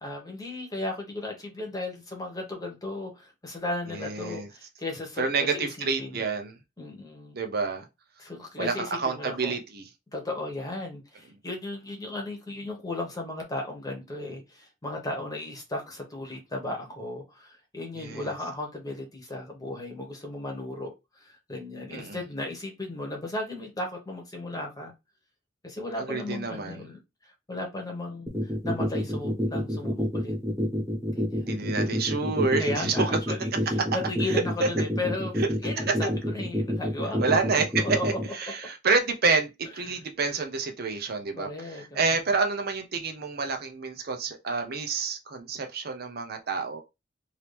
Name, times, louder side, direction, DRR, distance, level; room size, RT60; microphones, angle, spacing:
voice 1, 0.0-6.2 6.8-7.4 8.2-9.6 10.1-24.9 25.6-30.3 31.1-31.5 32.6-37.4 37.8-38.2 39.9-40.0 41.4-42.0, left 2 dB, 20° left, 1.1 m, -35 dB
voice 2, 3.9-4.5 5.2-6.5 7.3-7.9 8.6-9.9 17.9-18.3 21.9-22.2 26.0-26.8 31.4-33.1 34.3-34.7 35.4-35.5 35.9-36.1 37.2-46.8, right 4 dB, 55° right, 0.6 m, -28 dB
sound 1, 28.3-38.3, equal, 15° right, 1.3 m, -27 dB
3.0 x 2.8 x 3.3 m
head